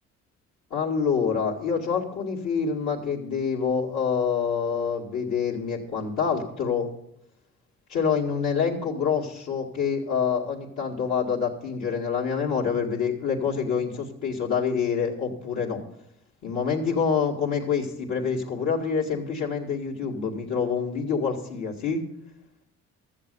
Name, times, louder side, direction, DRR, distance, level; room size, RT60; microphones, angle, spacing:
voice 1, 0.7-6.9 7.9-15.8 16.4-22.0, left 6 dB, 75° left, -6 dB, 2.2 m, -26 dB
13.5 x 7.6 x 6.8 m, 0.80 s
cardioid pair, 90°, 30 cm